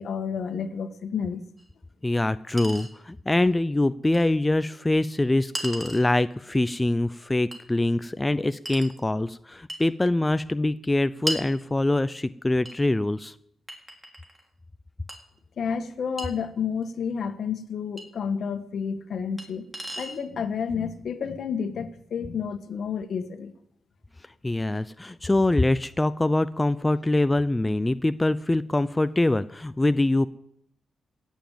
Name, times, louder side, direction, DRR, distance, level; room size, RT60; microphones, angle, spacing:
voice 1, 0.0-1.5 15.6-19.7 20.0-23.5, left 6 dB, 65° left, 10 dB, 1.5 m, -30 dB
Chink clink, 1.6-1.7 2.6-2.9 4.1-4.2 5.6-6.1 7.5-7.6 8.7-8.9 9.7-9.9 11.3-11.5 12.7-12.8 13.7-14.4 15.1-15.2 16.2-16.3 18.0-18.1 19.4-19.5 19.7-20.2, right 1 dB, 20° right, 3.9 m, -34 dB
voice 2, 2.0-13.3 24.4-30.3, left 2 dB, 20° left, 13 dB, 0.6 m, -24 dB
17.0 x 7.2 x 9.0 m, 0.71 s
supercardioid pair, 55°, 0 cm